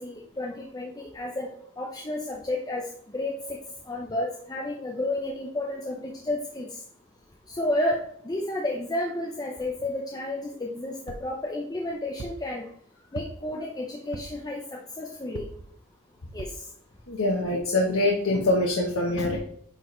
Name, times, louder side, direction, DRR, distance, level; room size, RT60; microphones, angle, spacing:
voice 1, 0.0-1.5 1.8-3.6 3.9-6.8 7.5-12.7 13.1-14.6 15.0-15.4 16.3-16.7, left 1 dB, 20° left, 0 dB, 0.6 m, -31 dB
sound 1, 11.1-11.4 12.2-12.5 13.2-13.6 14.1-14.5 15.4-15.7 16.4-16.7 17.3-17.4 17.6-17.7, right 3 dB, 65° right, 0.5 m, -40 dB
voice 2, 17.1-19.4, left 2 dB, 75° left, 0 dB, 1.0 m, -24 dB
9.1 x 4.1 x 3.1 m, 0.67 s
head